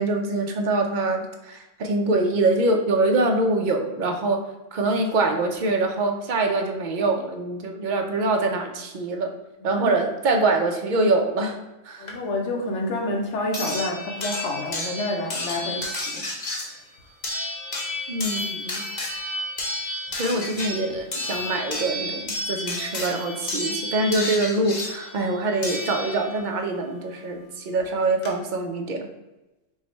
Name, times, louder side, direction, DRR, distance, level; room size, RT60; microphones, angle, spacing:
voice 1, 0.0-4.4 4.7-9.3 9.6-11.6 11.8-12.1 18.1-18.8 20.1-29.1, right 2 dB, 50° right, 3 dB, 0.6 m, -24 dB
voice 2, 9.6-10.0 12.0-16.3, left 2 dB, 70° left, 0 dB, 1.0 m, -29 dB
sound 1, 12.1-12.2 13.5-26.5 27.8-27.9 28.2-28.3, left 1 dB, 40° left, 0.8 m, -31 dB
4.8 x 2.2 x 4.0 m, 1.0 s
omnidirectional pair, 1.3 m